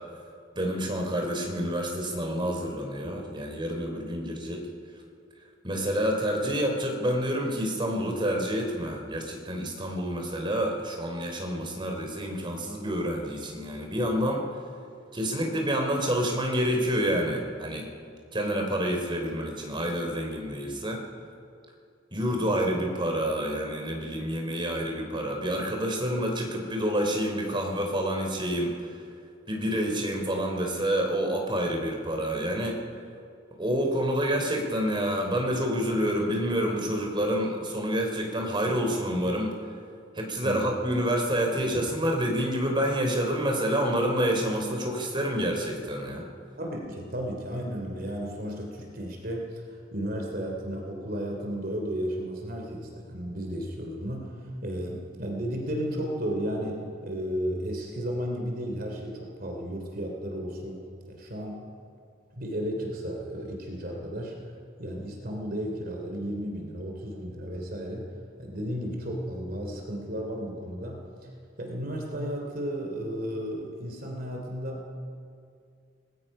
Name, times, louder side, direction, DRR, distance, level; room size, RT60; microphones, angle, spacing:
voice 1, 0.5-4.6 5.6-14.4 15.1-17.9 18.3-21.0 22.1-28.7 29.5-32.8 33.6-39.6 40.1-46.2, equal, 25° right, 2 dB, 3.4 m, -28 dB
voice 2, 46.6-60.8 61.1-61.7 62.3-64.3 64.8-68.1 68.4-71.0 71.6-74.8, equal, 55° right, 1 dB, 3.1 m, -33 dB
25.5 x 19.5 x 5.6 m, 2.3 s
head